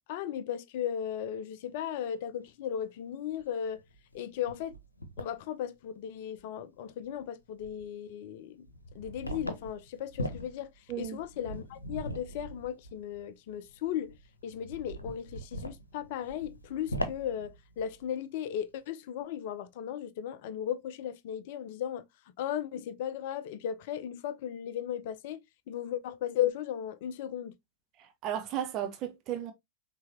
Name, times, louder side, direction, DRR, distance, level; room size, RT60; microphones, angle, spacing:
voice 1, 0.1-3.8 4.1-4.7 5.2-8.7 8.9-10.7 11.0-14.2 14.4-22.1 22.4-25.4 25.7-27.6, left 10 dB, 50° left, 0.5 m, -36 dB
sound 1, 2.8-2.9 3.3-3.4 3.8-5.4 6.4-6.5 6.9-7.2 7.5-7.9 8.6-18.1, equal, 80° left, 0.9 m, -41 dB
voice 2, 28.2-29.5, right 10 dB, 35° right, 0.9 m, -34 dB
5.7 x 3.2 x 2.7 m
figure-of-eight pair, 90°, 0 cm